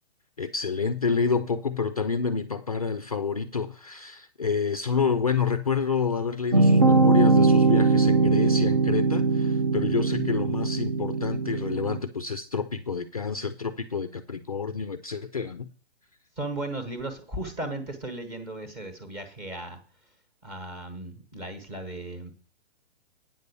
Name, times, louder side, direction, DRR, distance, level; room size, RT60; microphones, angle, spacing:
voice 1, 0.4-15.7, left 5 dB, 35° left, 0.4 m, -28 dB
sound 1, 6.5-12.0, right 3 dB, 30° right, 0.4 m, -21 dB
voice 2, 16.4-19.8 20.4-22.3, right 2 dB, 15° right, 1.0 m, -36 dB
8.9 x 5.3 x 6.8 m
hypercardioid pair, 175°, 33 cm